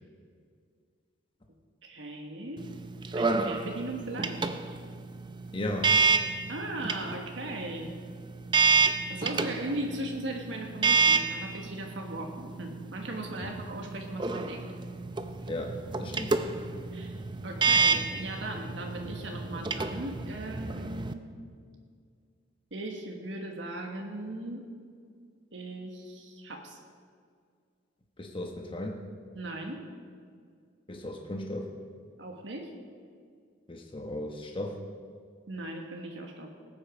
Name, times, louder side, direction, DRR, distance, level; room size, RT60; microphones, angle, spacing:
voice 1, 1.8-2.6 3.1-4.4 6.5-7.9 9.1-14.7 16.1-16.2 16.9-17.2 17.4-21.3 22.7-24.6 25.5-26.8 29.3-29.8 32.2-32.7 35.5-36.5, right 1 dB, 80° right, 2 dB, 1.5 m, -38 dB
sound 1, 2.6-21.1, right 4 dB, 25° right, 0.6 m, -29 dB
voice 2, 5.5-6.0 13.4-13.5 15.5-16.4 28.2-29.0 30.9-31.7 33.7-34.8, left 1 dB, 30° left, 2 dB, 1.1 m, -36 dB
19.0 x 8.8 x 5.1 m, 2.1 s
head